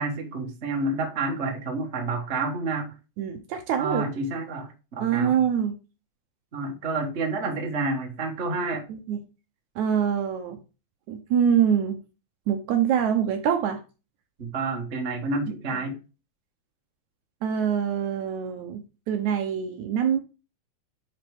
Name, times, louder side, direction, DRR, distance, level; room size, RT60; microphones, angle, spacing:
voice 1, 0.0-2.9 3.8-5.3 6.5-8.8 14.4-16.0, right 3 dB, 40° right, 1.0 m, -29 dB
voice 2, 3.2-4.0 5.0-5.7 8.9-9.2 9.8-10.6 11.1-12.0 12.5-13.8 17.4-20.2, right 8 dB, 70° right, 2.0 m, -24 dB
9.8 x 4.2 x 3.5 m
omnidirectional pair, 3.8 m